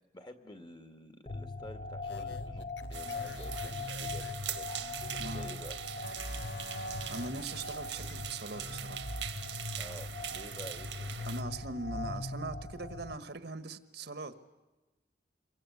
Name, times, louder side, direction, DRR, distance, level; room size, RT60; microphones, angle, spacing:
voice 1, 0.1-4.7 5.1-5.8 9.8-11.1, left 1 dB, 25° left, 7 dB, 2.1 m, -50 dB
sound 1, 1.3-13.1, left 2 dB, 45° left, 1.2 m, -40 dB
sound 2, 2.0-5.5 5.9-8.8, left 4 dB, 70° left, 0.9 m, -50 dB
sound 3, 2.9-11.4, right 10 dB, 80° right, 1.6 m, -42 dB
voice 2, 5.2-5.5 7.1-9.1 11.3-14.4, right 3 dB, 65° right, 11 dB, 1.4 m, -41 dB
27.5 x 23.5 x 8.4 m, 1.1 s
head